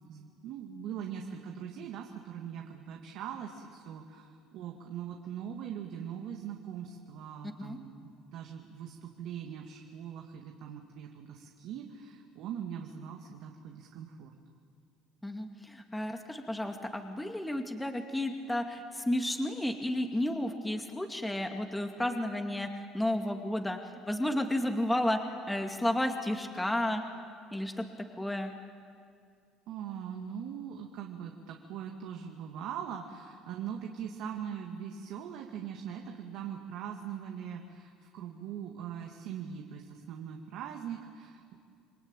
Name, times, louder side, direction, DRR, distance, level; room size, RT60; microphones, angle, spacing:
voice 1, 0.1-14.4 29.7-41.6, right 8 dB, 70° right, 2 dB, 2.2 m, -41 dB
voice 2, 15.2-23.8 24.0-25.2 25.5-27.0 27.5-27.9 28.2-28.6, left 1 dB, 10° left, 4 dB, 2.3 m, -32 dB
28.0 x 22.0 x 9.1 m, 2.2 s
supercardioid pair, 90°, 0 cm